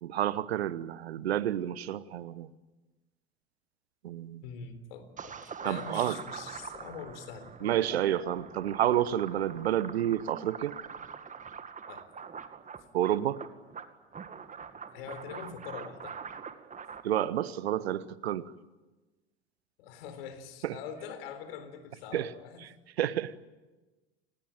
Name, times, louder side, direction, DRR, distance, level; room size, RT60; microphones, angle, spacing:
voice 1, 0.0-2.5 4.0-4.4 5.6-6.2 7.6-10.8 12.9-13.4 17.0-18.5 20.6-20.7 22.1-22.3 23.0-23.3, right 11 dB, 75° right, 17 dB, 1.1 m, -29 dB
voice 2, 4.4-8.4 11.9-12.1 14.9-16.2 19.8-22.7, left 6 dB, 65° left, 11 dB, 4.0 m, -44 dB
sound 1, 5.2-17.0, right 6 dB, 25° right, 2.1 m, -44 dB
28.5 x 19.5 x 9.0 m, 1.2 s
figure-of-eight pair, 75°, 32 cm